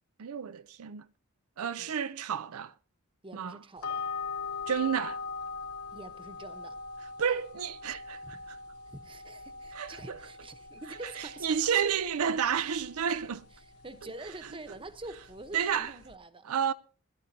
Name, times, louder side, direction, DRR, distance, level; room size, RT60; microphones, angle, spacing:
voice 1, 0.2-1.1 1.6-2.7 3.3-3.6 4.7-5.2 7.2-8.6 9.7-10.2 11.2-13.5 15.5-15.9 16.4-16.7, right 7 dB, 75° right, 0.5 m, -31 dB
voice 2, 3.2-4.1 5.9-6.8 8.2-8.4 8.9-11.6 13.6-16.6, right 2 dB, 25° right, 1.0 m, -46 dB
sound 1, 3.8-16.2, left 4 dB, 80° left, 0.9 m, -42 dB
21.0 x 12.0 x 2.8 m
head